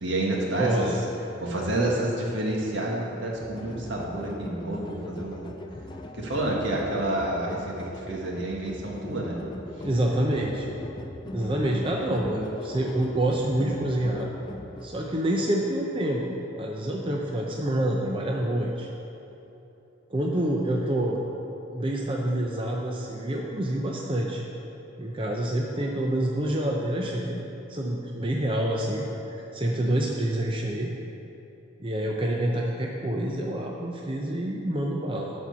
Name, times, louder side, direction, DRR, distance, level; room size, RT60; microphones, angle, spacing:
voice 1, 0.0-0.9 1.4-5.5 6.2-9.4, right 1 dB, 70° right, -2 dB, 1.6 m, -29 dB
voice 2, 0.6-1.0 9.8-10.7 11.3-14.3 14.8-18.9 20.1-21.2 21.7-24.4 25.0-27.4 27.7-30.9 31.8-35.3, right 1 dB, 25° right, -1 dB, 0.6 m, -27 dB
sound 1, 3.3-14.9, left 1 dB, 20° left, 0.4 m, -40 dB
11.0 x 4.4 x 6.9 m, 3.0 s
head